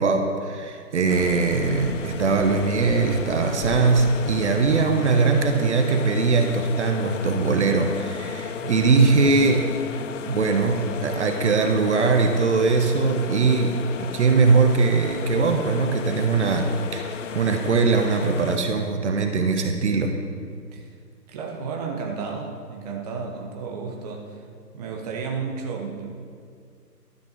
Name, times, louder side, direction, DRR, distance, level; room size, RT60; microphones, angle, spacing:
voice 1, 0.0-9.7 10.3-20.1, right 4 dB, 45° right, 5 dB, 1.1 m, -21 dB
sound 1, 1.1-18.6, left 7 dB, 50° left, 0.5 m, -34 dB
voice 2, 8.6-9.1 20.7-20.9 21.3-24.4 24.7-26.1, right 5 dB, 25° right, 1 dB, 1.0 m, -33 dB
12.5 x 9.3 x 5.1 m, 2.2 s
hypercardioid pair, 150°, 48 cm